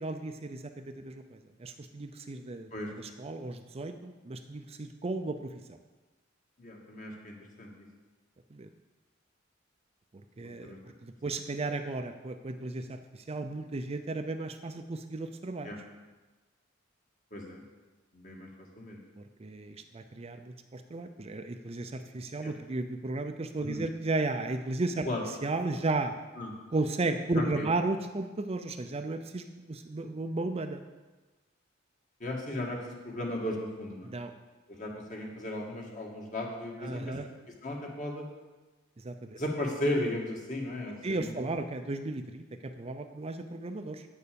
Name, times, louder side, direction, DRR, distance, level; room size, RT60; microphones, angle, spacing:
voice 1, 0.0-5.8 8.5-8.7 10.4-10.7 11.0-15.7 19.2-25.1 25.4-26.1 26.7-30.8 34.0-34.3 36.8-37.3 39.0-39.4 41.0-44.1, right 2 dB, 30° right, 7 dB, 0.5 m, -34 dB
voice 2, 6.6-7.7 10.6-10.8 15.6-15.8 17.3-17.6 18.1-18.5 18.8-19.0 22.4-22.5 23.6-23.8 25.0-25.2 26.4-26.5 27.3-27.7 32.2-32.8 33.0-34.1 34.7-37.1 37.6-38.3 39.3-41.3, left 1 dB, 40° left, 0 dB, 1.9 m, -35 dB
8.6 x 6.8 x 6.9 m, 1.2 s
head